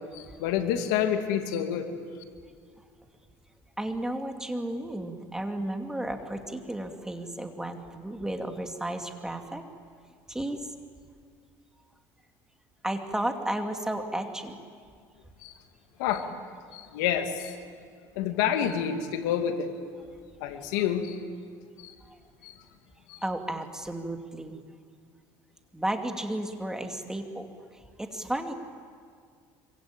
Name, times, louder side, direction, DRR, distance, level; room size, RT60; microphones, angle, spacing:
voice 1, 0.1-1.9 15.4-15.5 16.0-16.3 16.7-17.5 18.2-19.7 20.4-21.2 21.8-21.9 22.4-22.5 23.1-23.2, left 9 dB, 90° left, 6 dB, 2.4 m, -28 dB
voice 2, 3.8-9.6 10.3-10.7 12.8-14.6 22.1-22.2 23.2-24.6 25.7-27.5 27.7-28.5, right 1 dB, 5° right, 4 dB, 2.6 m, -33 dB
26.0 x 24.5 x 9.0 m, 2.1 s
cardioid pair, 115°, 9 cm